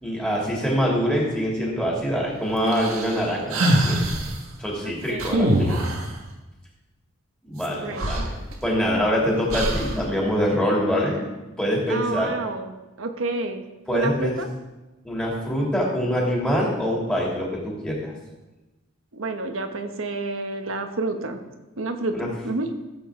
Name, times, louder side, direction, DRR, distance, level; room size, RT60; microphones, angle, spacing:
voice 1, 0.0-4.0 4.6-5.8 7.4-8.4 8.6-11.2 11.6-12.3 13.9-14.3 15.0-18.1 22.1-22.3, equal, 5° left, -4 dB, 2.7 m, -24 dB
sound 1, 2.7-4.3 5.2-6.1 7.6-7.7 8.0-9.0 9.5-10.0, right 1 dB, 90° right, 1.7 m, -23 dB
voice 2, 4.8-5.5 7.7-8.3 11.9-12.7 13.0-13.6 13.9-14.5 19.1-21.4 21.8-22.7, right 2 dB, 75° right, 6 dB, 1.1 m, -29 dB
15.5 x 7.7 x 3.7 m, 1.1 s
head